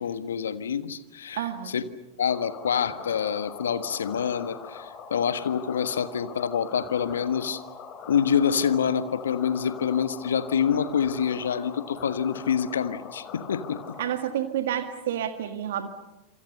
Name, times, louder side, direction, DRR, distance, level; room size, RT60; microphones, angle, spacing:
voice 1, 0.0-1.9 2.2-7.6 8.1-13.8, left 7 dB, 70° left, 12 dB, 1.4 m, -26 dB
voice 2, 1.3-1.7 14.0-15.9, right 10 dB, 65° right, 7 dB, 1.8 m, -29 dB
sound 1, 2.2-14.1, left 6 dB, 35° left, 5.1 m, -42 dB
27.5 x 27.0 x 6.7 m, 1.0 s
figure-of-eight pair, 90°, 0 cm